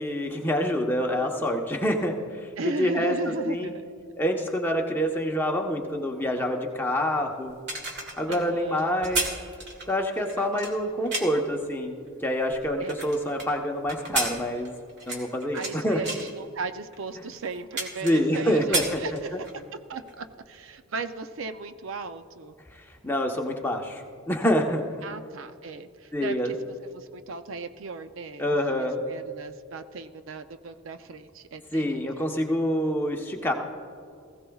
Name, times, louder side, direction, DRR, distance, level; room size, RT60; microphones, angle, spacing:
voice 1, 0.0-3.1 3.4-3.7 4.2-7.5 8.2-9.3 9.9-14.7 15.1-16.0 18.0-19.0 23.0-24.8 26.1-26.5 28.4-29.0 31.7-33.5, equal, 10° left, 1 dB, 0.9 m, -26 dB
voice 2, 2.6-4.1 8.3-8.8 10.3-10.5 10.9-11.1 12.8-12.9 15.5-19.6 19.9-22.5 25.0-26.6 26.9-32.3, right 4 dB, 65° right, 9 dB, 0.5 m, -37 dB
sound 1, 7.5-11.5 12.1-13.5 13.9-15.7 16.0-16.3 16.9-17.0 17.3-18.4 18.6-19.6 20.0-20.1, right 2 dB, 50° right, 2.0 m, -32 dB
19.5 x 15.5 x 2.3 m, 2.3 s
head